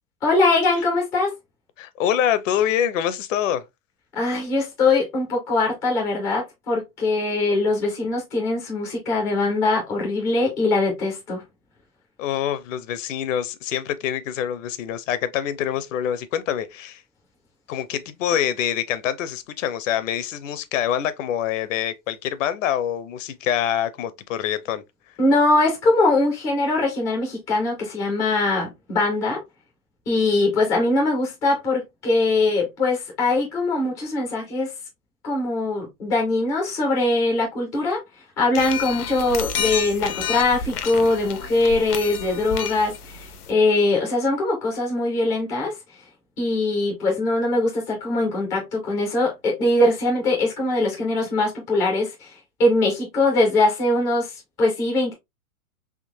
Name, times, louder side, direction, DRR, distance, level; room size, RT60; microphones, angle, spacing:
voice 1, 0.2-1.3 4.1-11.4 25.2-29.4 30.1-34.7 35.2-38.0 38.4-45.8 46.4-52.3 52.6-55.1, left 2 dB, 10° left, 0.3 m, -22 dB
voice 2, 1.8-3.6 12.2-17.0 17.7-24.8, left 10 dB, 60° left, 0.6 m, -25 dB
sound 1, 38.5-43.5, left 7 dB, 85° left, 0.9 m, -30 dB
3.7 x 2.8 x 2.6 m
hypercardioid pair, 140°, 44 cm